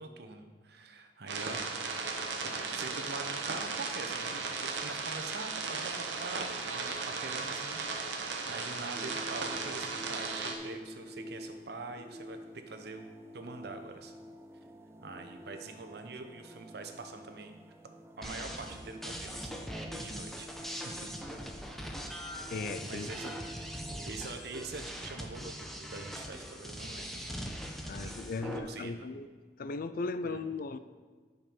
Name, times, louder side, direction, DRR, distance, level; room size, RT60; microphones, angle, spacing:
voice 1, 0.0-1.6 2.4-12.4 12.7-14.1 15.0-17.6 18.2-19.6 19.9-20.5 20.8-21.1 22.8-23.4 24.1-27.5 28.0-29.1 30.2-30.4, right 3 dB, 65° right, 6 dB, 0.9 m, -44 dB
sound 1, 1.3-10.5, right 4 dB, 90° right, 1.2 m, -36 dB
sound 2, 8.9-24.1, equal, 15° right, 0.4 m, -49 dB
sound 3, 18.2-28.6, equal, ahead, 0.8 m, -41 dB
voice 2, 22.5-23.1 27.9-29.3 29.6-30.8, left 3 dB, 55° left, 12 dB, 0.4 m, -37 dB
10.5 x 5.3 x 5.4 m, 1.5 s
head